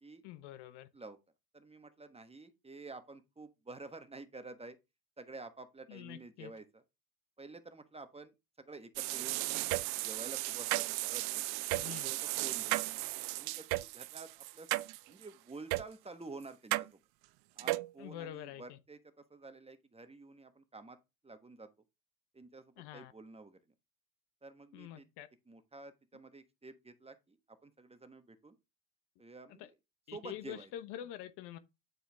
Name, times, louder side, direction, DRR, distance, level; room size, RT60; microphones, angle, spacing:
voice 1, 0.2-0.9 5.9-6.5 11.7-12.1 18.0-18.8 22.8-23.1 24.7-25.3 29.6-29.7 30.1-31.6, left 12 dB, 60° left, 1.0 m, -46 dB
voice 2, 1.5-4.8 5.2-6.8 7.4-9.4 10.0-12.8 13.4-13.6 13.9-14.7 15.1-16.9 17.6-19.0 19.3-21.0 21.2-21.7 22.3-23.6 24.4-25.1 25.5-28.5 29.2-29.7 30.1-30.7, right 3 dB, 15° right, 1.2 m, -50 dB
sound 1, 9.0-15.2 15.7-15.8 16.7-16.9 17.6-17.9, right 21 dB, 60° right, 0.5 m, -35 dB
9.4 x 4.5 x 3.4 m
hypercardioid pair, 85°, 44 cm